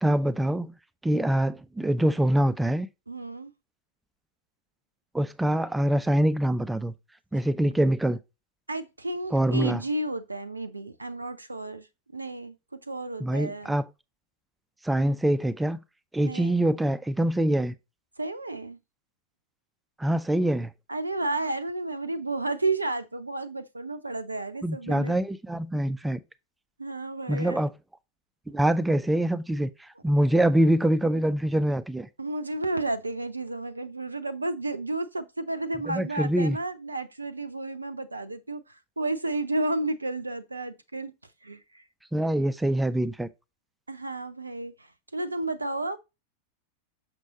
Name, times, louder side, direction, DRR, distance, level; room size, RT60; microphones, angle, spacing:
voice 1, 0.0-0.7 1.0-2.9 5.1-6.9 7.3-8.2 9.3-9.8 13.2-13.8 14.8-15.8 16.1-17.7 20.0-20.7 24.6-26.2 27.3-27.7 28.5-32.1 35.9-36.6 42.1-43.3, right 1 dB, 5° right, 0.5 m, -24 dB
voice 2, 3.1-3.5 8.7-11.9 12.1-12.5 12.9-13.7 16.2-16.7 18.2-18.8 20.9-25.2 26.8-27.6 32.2-41.1 41.4-41.8 43.9-46.0, right 2 dB, 80° right, 0.6 m, -32 dB
6.6 x 6.2 x 2.8 m
figure-of-eight pair, 90°, 0 cm